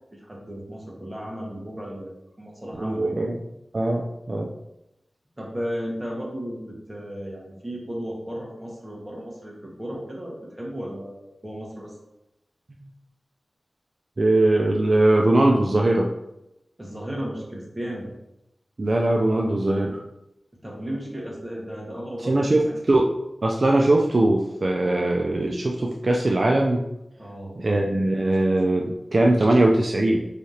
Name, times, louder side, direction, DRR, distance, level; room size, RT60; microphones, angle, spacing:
voice 1, 0.1-3.2 5.4-12.0 16.8-18.1 20.6-22.7 27.2-27.5 29.5-29.6, equal, 15° right, -3 dB, 1.4 m, -34 dB
voice 2, 2.8-3.4 3.7-4.5 14.2-16.1 18.8-20.0 22.2-23.1 23.4-26.8 27.6-30.3, right 1 dB, 50° right, 0 dB, 0.4 m, -21 dB
4.7 x 3.3 x 2.8 m, 0.88 s
wide cardioid pair, 65°, 0 cm